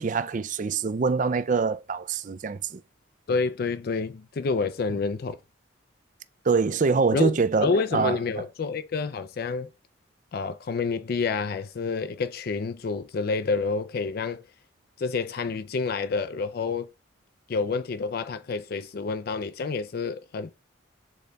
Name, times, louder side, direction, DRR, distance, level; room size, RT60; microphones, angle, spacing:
voice 1, 0.0-2.8 6.4-8.2, right 4 dB, 40° right, 0.4 m, -24 dB
voice 2, 3.3-5.4 7.1-7.3 7.6-9.7 10.3-14.4 15.0-16.9 17.5-20.5, left 4 dB, 50° left, 0.4 m, -28 dB
7.0 x 4.0 x 3.4 m
head